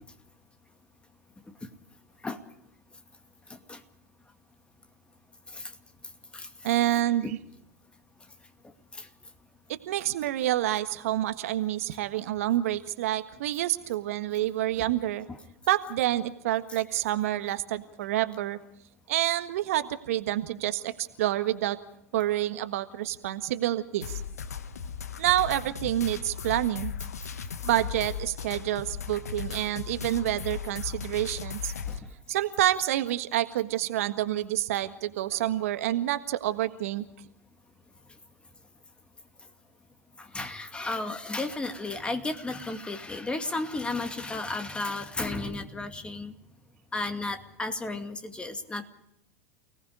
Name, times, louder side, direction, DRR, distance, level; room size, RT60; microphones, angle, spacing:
voice 1, 6.6-7.4 9.9-15.3 15.7-18.6 19.1-21.8 22.1-24.2 25.2-26.9 27.6-31.7 32.3-37.0, right 13 dB, 65° right, 10 dB, 1.5 m, -28 dB
sound 1, 24.0-32.0, left 7 dB, 80° left, 1.3 m, -37 dB
voice 2, 40.2-46.3 46.9-48.9, left 2 dB, 10° left, 7 dB, 2.4 m, -33 dB
29.0 x 18.5 x 5.0 m, 0.76 s
hypercardioid pair, 95°, 8 cm